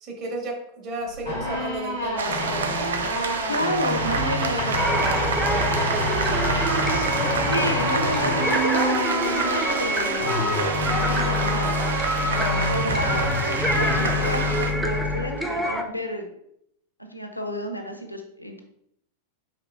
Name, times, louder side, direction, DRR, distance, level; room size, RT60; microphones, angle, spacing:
voice 1, 0.0-2.9 4.4-7.6 12.3-12.7, right 1 dB, 35° right, -1 dB, 1.6 m, -34 dB
sound 1, 1.1-15.7, left 1 dB, 80° right, 1.7 m, -27 dB
sound 2, 2.2-14.7, right 5 dB, 65° right, 0.5 m, -29 dB
voice 2, 3.5-4.8 7.5-11.8 12.6-16.3 17.1-18.6, equal, 90° left, 5 dB, 0.6 m, -31 dB
sound 3, 4.8-15.8, right 1 dB, 5° right, 0.6 m, -28 dB
5.6 x 3.5 x 2.4 m, 0.72 s
figure-of-eight pair, 90°, 0 cm